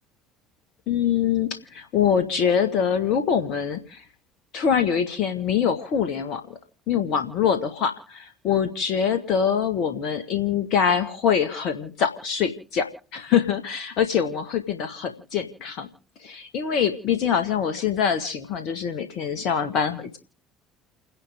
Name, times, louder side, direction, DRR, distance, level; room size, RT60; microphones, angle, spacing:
voice 1, 0.9-4.0 4.5-6.4 6.9-15.9 16.2-20.2, left 7 dB, 55° left, 9 dB, 1.8 m, -24 dB
29.5 x 11.0 x 3.7 m, 0.41 s
hypercardioid pair, 60°, 0 cm